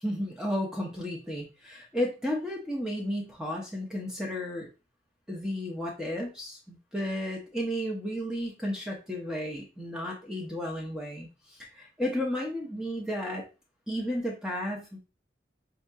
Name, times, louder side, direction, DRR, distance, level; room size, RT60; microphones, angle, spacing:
voice 1, 0.0-4.7 5.3-11.3 11.7-13.4 13.9-15.0, equal, 5° right, -1 dB, 0.6 m, -33 dB
4.3 x 2.7 x 2.3 m, 0.30 s
head